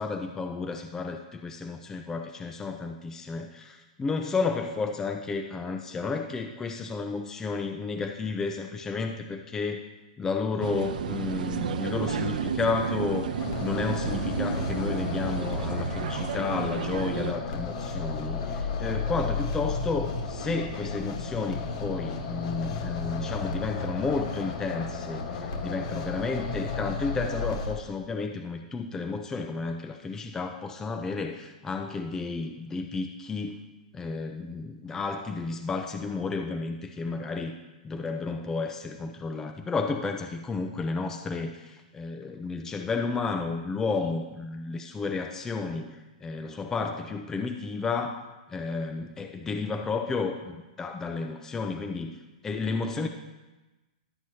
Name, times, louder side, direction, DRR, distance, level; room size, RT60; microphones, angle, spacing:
voice 1, 0.0-9.8 10.2-13.3 13.6-33.6 33.9-37.5 37.8-52.1 52.4-53.1, left 4 dB, 10° left, 4 dB, 0.5 m, -32 dB
sound 1, 10.6-17.3, right 7 dB, 75° right, 0.6 m, -32 dB
sound 2, 13.4-27.7, left 4 dB, 55° left, 1.5 m, -33 dB
12.0 x 7.8 x 2.9 m, 1.1 s
hypercardioid pair, 150°, 4 cm